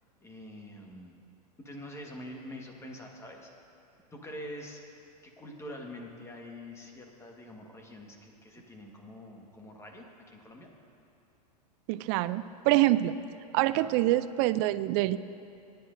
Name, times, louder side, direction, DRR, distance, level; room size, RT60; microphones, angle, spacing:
voice 1, 0.2-1.1 1.6-3.5 4.1-4.8 5.2-10.7 13.7-13.9, left 1 dB, 15° left, 1 dB, 1.5 m, -45 dB
voice 2, 11.9-13.2 13.5-15.2, right 16 dB, 45° right, 15 dB, 0.4 m, -25 dB
20.5 x 10.5 x 2.6 m, 2.6 s
hypercardioid pair, 115°, 21 cm